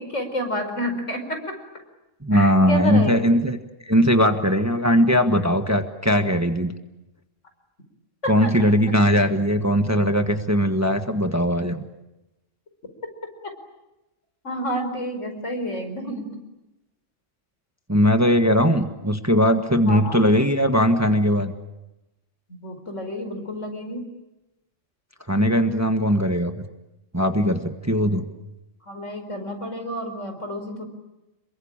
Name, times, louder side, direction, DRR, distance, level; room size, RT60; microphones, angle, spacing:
voice 1, 0.0-1.5 2.3-3.2 8.2-8.5 9.1-9.2 14.4-16.3 19.9-20.2 22.5-24.1 28.9-30.8, equal, 75° left, 5 dB, 5.4 m, -29 dB
voice 2, 2.2-3.6 3.8-6.7 8.3-11.8 17.9-21.5 25.3-26.5 27.1-28.3, equal, 15° right, 7 dB, 1.4 m, -19 dB
28.0 x 23.0 x 8.8 m, 0.97 s
omnidirectional pair, 1.3 m